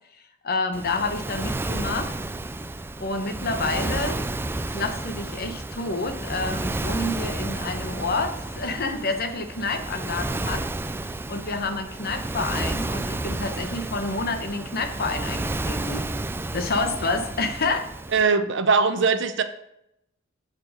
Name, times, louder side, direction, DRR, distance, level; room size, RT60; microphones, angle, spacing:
voice 1, 0.4-2.1 3.0-4.2 4.7-10.6 11.0-16.1 16.5-17.9, left 3 dB, 50° left, 7 dB, 0.9 m, -28 dB
Waves surf, 0.7-18.2, right 2 dB, 10° right, 0.3 m, -31 dB
voice 2, 18.1-19.4, right 5 dB, 65° right, 9 dB, 0.7 m, -20 dB
7.5 x 4.4 x 6.3 m, 0.79 s
head